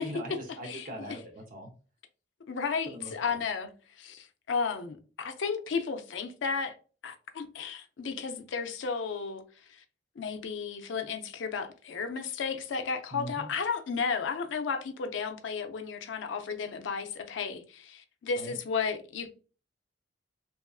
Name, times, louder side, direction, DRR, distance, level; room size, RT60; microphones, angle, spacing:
voice 1, 0.0-1.7 2.9-3.4 13.1-13.5 18.4-18.6, equal, 50° right, 0.7 m, -41 dB
voice 2, 0.6-1.2 2.5-3.7 4.0-6.7 7.0-9.4 9.7-9.8 10.2-19.3, left 5 dB, 80° left, 0.4 m, -33 dB
2.9 x 2.4 x 2.3 m
head